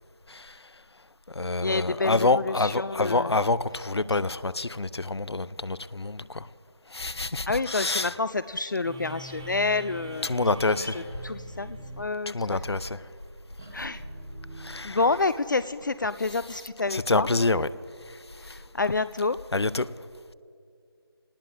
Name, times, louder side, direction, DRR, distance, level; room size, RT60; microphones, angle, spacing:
voice 1, 0.3-0.7 1.3-6.5 6.9-8.2 10.2-11.0 12.3-13.0 14.6-15.1 16.2-17.7 18.1-18.6 19.5-19.9, left 3 dB, 85° left, 17 dB, 0.6 m, -27 dB
voice 2, 1.6-3.4 7.5-10.3 10.8-12.6 13.7-14.0 14.8-17.3 18.4-19.4, left 3 dB, 50° left, 14 dB, 0.4 m, -28 dB
sound 1, 8.8-15.6, right 1 dB, 10° right, 0.7 m, -42 dB
29.0 x 19.0 x 2.6 m, 2.4 s
figure-of-eight pair, 165°, 13 cm